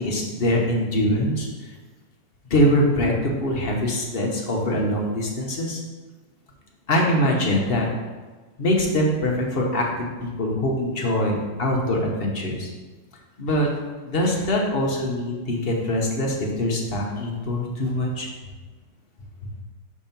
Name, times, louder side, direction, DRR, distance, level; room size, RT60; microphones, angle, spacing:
voice 1, 0.0-1.5 2.5-5.8 6.9-7.9 8.6-12.7 13.4-13.7 14.0-18.3, left 1 dB, 40° left, -1 dB, 1.0 m, -23 dB
5.2 x 3.7 x 5.8 m, 1.3 s
omnidirectional pair, 1.8 m